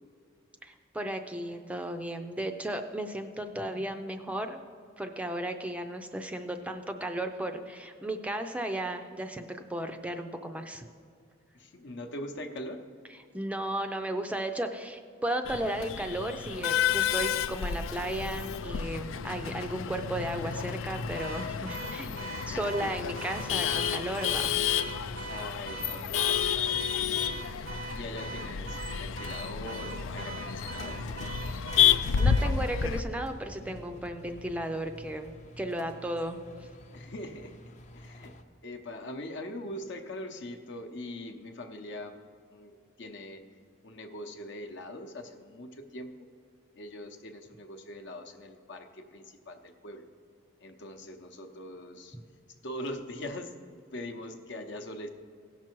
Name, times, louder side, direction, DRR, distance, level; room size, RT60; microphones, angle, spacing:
voice 1, 0.6-4.6 5.0-10.8 13.3-24.5 31.5-31.6 32.2-35.3 35.6-36.4, right 1 dB, 5° right, 6 dB, 0.4 m, -35 dB
voice 2, 11.5-12.9 22.2-22.8 24.3-24.7 25.3-31.0 36.9-37.6 37.9-38.3 38.6-42.2 42.5-43.4 43.8-46.3 46.7-50.1 50.6-52.2 52.6-55.1, left 1 dB, 65° left, 5 dB, 0.8 m, -42 dB
Male speech man speaking / Laughter / Chatter, 15.5-33.0, left 8 dB, 80° left, 0.4 m, -30 dB
Car / Alarm, 21.2-32.6, right 4 dB, 80° right, 0.6 m, -42 dB
sound 1, 23.0-38.4, left 1 dB, 40° left, 0.6 m, -46 dB
16.5 x 6.0 x 4.5 m, 2.3 s
head